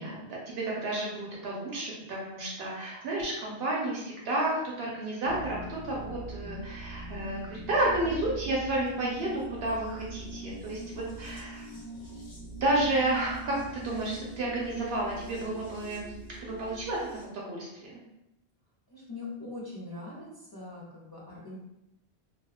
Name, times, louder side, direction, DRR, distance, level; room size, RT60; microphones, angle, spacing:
voice 1, 0.0-11.7 12.6-16.1 16.4-17.9, right 1 dB, 75° right, -4 dB, 0.8 m, -31 dB
sound 1, 5.2-17.3, right 2 dB, 80° left, 0.9 m, -43 dB
voice 2, 18.9-21.6, left 2 dB, 35° left, -7 dB, 0.4 m, -42 dB
2.6 x 2.1 x 2.3 m, 0.87 s
omnidirectional pair, 1.1 m